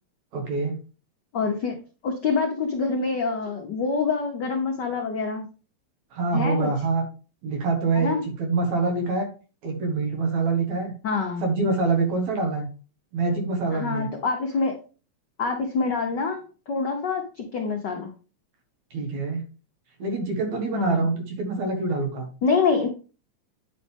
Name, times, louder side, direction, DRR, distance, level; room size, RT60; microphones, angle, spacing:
voice 1, 0.3-0.8 6.1-7.0 7.4-9.3 9.6-10.9 11.4-12.7 13.1-14.1 18.9-19.4 20.0-22.3, right 3 dB, 75° right, 3 dB, 2.9 m, -25 dB
voice 2, 1.3-1.7 2.0-5.5 6.3-6.7 7.9-8.3 11.0-11.4 13.7-14.8 15.4-18.1 20.7-21.0 22.4-22.9, left 4 dB, 85° left, 2 dB, 0.9 m, -26 dB
8.8 x 5.2 x 3.5 m, 0.35 s
omnidirectional pair, 3.3 m